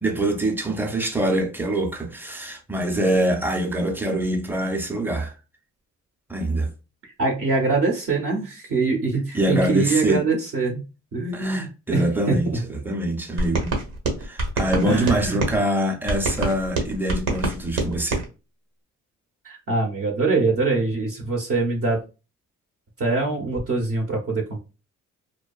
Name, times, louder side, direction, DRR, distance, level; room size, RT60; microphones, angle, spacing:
voice 1, 0.0-5.3 6.3-6.7 9.3-10.3 11.3-13.7 14.2-18.2, right 1 dB, 5° right, 0.6 m, -24 dB
voice 2, 7.0-10.8 11.1-12.6 14.8-15.4 19.4-22.0 23.0-24.6, right 3 dB, 50° right, 0.8 m, -24 dB
sound 1, 13.4-15.6 16.1-18.2, right 2 dB, 80° right, 1.0 m, -26 dB
2.6 x 2.2 x 2.3 m
cardioid pair, 90°, 30 cm